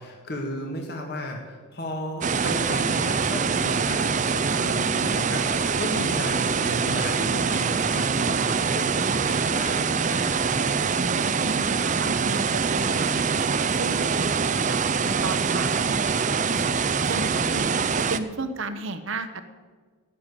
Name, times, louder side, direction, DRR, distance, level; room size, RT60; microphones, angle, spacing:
voice 1, 0.0-10.3, equal, 50° left, 1 dB, 1.8 m, -34 dB
sound 1, 2.2-18.2, right 5 dB, 35° right, 0.5 m, -24 dB
voice 2, 10.9-14.3 14.7-16.2 16.5-16.6 17.0-17.7 18.0-19.4, right 2 dB, 60° right, 10 dB, 0.9 m, -34 dB
17.5 x 6.9 x 8.4 m, 1.5 s
head